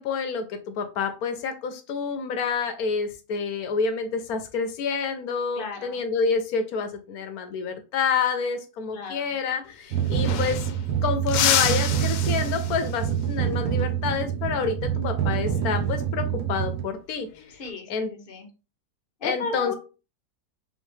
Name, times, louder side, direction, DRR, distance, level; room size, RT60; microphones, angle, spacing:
voice 1, 0.0-10.7 11.0-17.3 17.9-18.1 19.2-19.7, left 5 dB, 65° left, 8 dB, 1.1 m, -28 dB
voice 2, 5.5-6.0 8.9-9.3 17.5-18.5 19.2-19.7, left 4 dB, 45° left, 3 dB, 0.7 m, -35 dB
sound 1, 9.6-9.7 9.9-10.9 11.3-13.0 15.5-15.8 17.2-17.7, left 9 dB, 85° left, 1.3 m, -28 dB
sound 2, 9.9-16.8, right 9 dB, 70° right, 1.3 m, -26 dB
3.7 x 3.2 x 3.2 m, 0.33 s
omnidirectional pair, 1.8 m